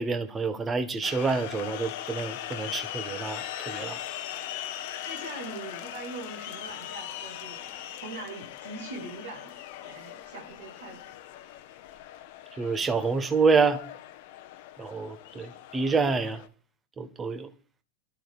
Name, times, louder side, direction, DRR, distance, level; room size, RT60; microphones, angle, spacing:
voice 1, 0.0-4.0 12.6-13.8 14.8-16.4 17.0-17.5, right 4 dB, 15° right, 1.4 m, -27 dB
sound 1, 1.0-16.5, left 12 dB, 50° left, 1.1 m, -40 dB
voice 2, 5.0-7.7 7.9-9.5 9.8-11.2, right 2 dB, 65° right, 7.2 m, -41 dB
27.0 x 13.0 x 2.5 m
figure-of-eight pair, 90°, 0 cm